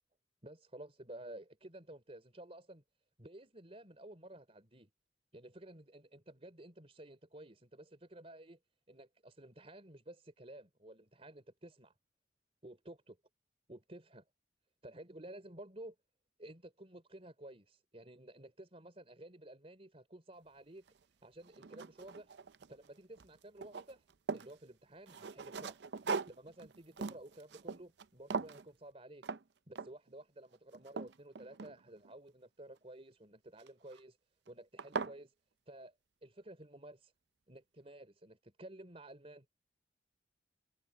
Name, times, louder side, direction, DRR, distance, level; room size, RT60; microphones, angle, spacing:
voice 1, 0.4-2.8 3.2-4.9 5.3-8.6 8.9-11.9 12.6-13.1 13.7-14.2 14.8-16.0 16.4-20.9 21.2-22.3 22.7-24.0 24.3-25.8 26.3-29.2 29.7-34.2 34.5-35.3 35.7-36.0 36.2-37.1 37.5-39.5, right 1 dB, 35° right, 3.8 m, -53 dB
sound 1, 20.9-21.0 21.4-22.9 23.2-24.5 25.1-28.1 28.3-28.7 29.2-29.4 29.8-30.1 30.5-32.1 33.6-34.0 34.5-34.6 34.8-35.2, right 4 dB, 65° right, 0.6 m, -41 dB
head